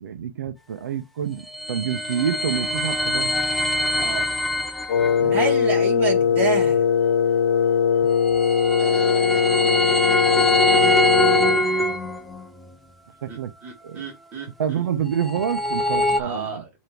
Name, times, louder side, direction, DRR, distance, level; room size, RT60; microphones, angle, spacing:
voice 1, 0.0-1.4 1.7-3.3 5.2-5.4 13.2-13.5 13.8-14.0 14.6-16.6, right 8 dB, 75° right, 1.0 m, -27 dB
sound 1, 1.2-5.2 8.0-12.5 15.0-16.2, left 1 dB, ahead, 0.5 m, -23 dB
Wind instrument woodwind instrument, 4.9-11.6, left 7 dB, 60° left, 0.5 m, -20 dB
voice 2, 5.3-6.8 8.8-10.9 13.3-14.8 16.2-16.7, right 4 dB, 15° right, 2.1 m, -30 dB
6.9 x 3.1 x 4.6 m
supercardioid pair, 170°, 10 cm